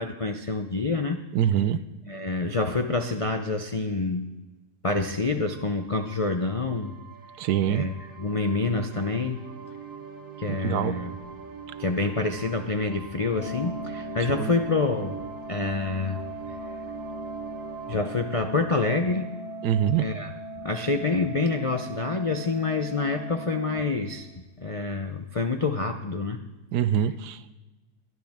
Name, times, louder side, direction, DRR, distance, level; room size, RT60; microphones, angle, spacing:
voice 1, 0.0-1.2 2.0-4.3 4.8-7.0 7.7-9.4 10.4-11.2 11.8-15.2 15.5-16.2 17.9-19.3 20.0-20.3 20.6-24.3 24.6-26.4, left 3 dB, 65° left, 6 dB, 0.3 m, -27 dB
voice 2, 1.3-1.8 7.4-7.8 10.6-10.9 14.3-14.5 19.6-20.1 26.7-27.4, right 9 dB, 90° right, 13 dB, 1.3 m, -24 dB
sound 1, 5.4-19.9, right 6 dB, 55° right, 1.5 m, -43 dB
Organ, 13.3-24.3, right 1 dB, 85° left, 2.2 m, -39 dB
21.5 x 11.0 x 3.5 m, 1.1 s
omnidirectional pair, 1.7 m